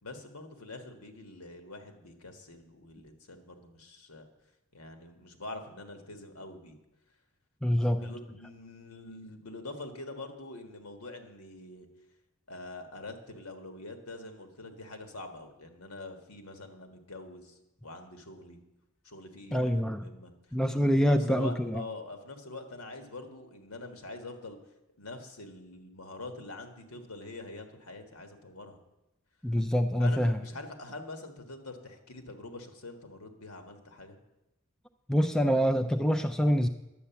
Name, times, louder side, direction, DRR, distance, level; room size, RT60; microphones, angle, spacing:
voice 1, 0.0-4.3 4.7-6.8 7.8-11.9 12.5-18.6 19.0-24.6 25.0-28.8 30.0-34.2, left 2 dB, 75° left, 6 dB, 1.6 m, -45 dB
voice 2, 7.6-8.0 19.5-20.0 20.5-21.8 29.4-30.4 35.1-36.7, equal, 5° left, 6 dB, 0.3 m, -25 dB
11.0 x 8.3 x 7.0 m, 0.95 s
head